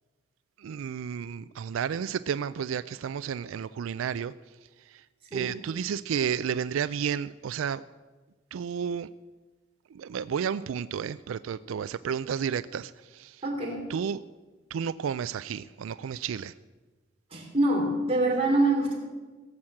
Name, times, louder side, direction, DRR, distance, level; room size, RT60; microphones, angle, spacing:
voice 1, 0.6-4.3 4.9-5.0 5.3-7.8 8.5-9.1 9.9-13.4 13.9-14.2 14.7-16.5, right 7 dB, 85° right, 15 dB, 0.3 m, -32 dB
voice 2, 13.4-13.8 17.3-18.9, right 2 dB, 30° right, -2 dB, 3.5 m, -25 dB
17.0 x 7.3 x 7.7 m, 1.3 s
head